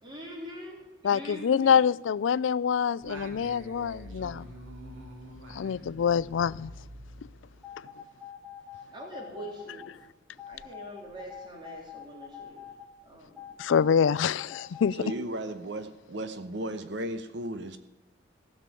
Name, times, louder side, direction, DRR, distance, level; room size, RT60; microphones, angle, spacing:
voice 1, 0.0-1.8 5.4-5.9 8.8-10.1 10.5-12.7 13.0-13.5, equal, 25° right, -1 dB, 3.4 m, -44 dB
voice 2, 1.0-4.4 5.5-6.7 13.6-15.0, left 7 dB, 80° left, 21 dB, 0.4 m, -25 dB
Singing, 3.0-7.8, equal, 90° right, 2.7 m, -46 dB
sound 1, 7.6-9.9 10.4-12.9 13.4-15.1, left 8 dB, 5° right, 3.5 m, -45 dB
voice 3, 15.0-17.8, right 1 dB, 65° right, 10 dB, 1.0 m, -35 dB
15.5 x 6.8 x 8.3 m, 1.1 s
head